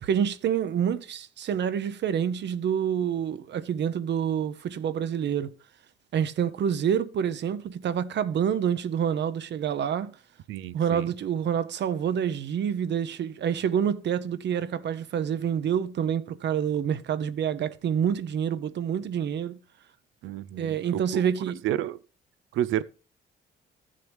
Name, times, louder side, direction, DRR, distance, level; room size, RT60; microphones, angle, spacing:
voice 1, 0.0-5.5 6.1-10.1 10.7-19.6 20.6-21.6, right 8 dB, 60° right, 0.8 m, -27 dB
voice 2, 10.5-11.1 20.2-21.2 21.6-22.0 22.5-22.8, right 12 dB, 85° right, 0.5 m, -30 dB
14.0 x 7.5 x 3.4 m
cardioid pair, 90°, 20 cm